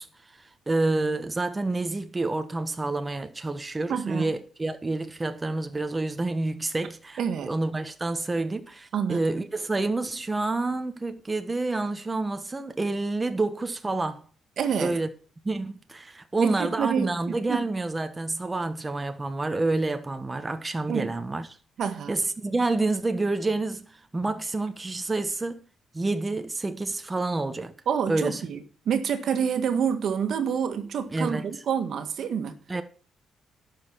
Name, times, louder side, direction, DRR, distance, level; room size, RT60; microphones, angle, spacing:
voice 1, 0.0-7.2 7.5-14.2 14.8-15.1 15.4-21.5 22.1-25.6 25.9-27.7 28.1-28.4 31.1-31.5 32.7-32.8, right 2 dB, 20° right, 1.3 m, -28 dB
voice 2, 3.9-4.3 7.2-7.5 8.9-9.2 14.6-15.0 16.4-17.7 20.9-21.1 21.8-22.2 27.9-32.5, right 7 dB, 65° right, 1.8 m, -28 dB
11.5 x 6.8 x 6.1 m
cardioid pair, 90°, 0 cm